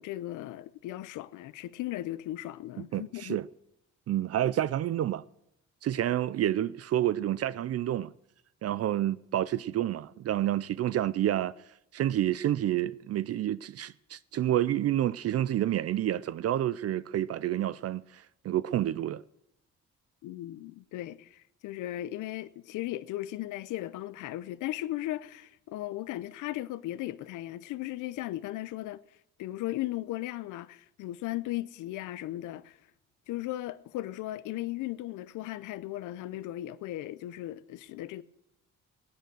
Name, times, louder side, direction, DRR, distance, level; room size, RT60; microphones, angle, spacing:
voice 1, 0.0-3.4 20.2-29.0 29.4-32.8 33.3-38.2, left 15 dB, 90° left, 0.6 m, -37 dB
voice 2, 2.9-3.5 4.1-5.2 5.8-8.1 8.6-11.5 11.9-19.2, right 12 dB, 55° right, 0.5 m, -29 dB
18.0 x 9.2 x 6.3 m
cardioid pair, 90°, 30 cm